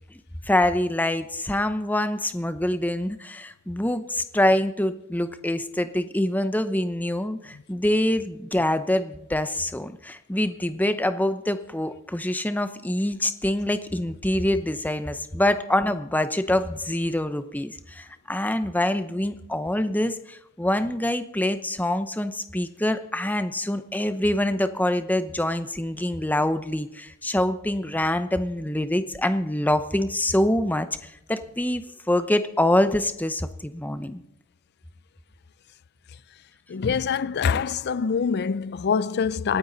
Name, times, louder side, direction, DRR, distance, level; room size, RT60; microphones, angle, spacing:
voice 1, 0.4-34.2, left 1 dB, 10° left, 0.8 m, -25 dB
voice 2, 36.7-39.6, left 6 dB, 50° left, 0.4 m, -25 dB
26.0 x 9.2 x 4.0 m
head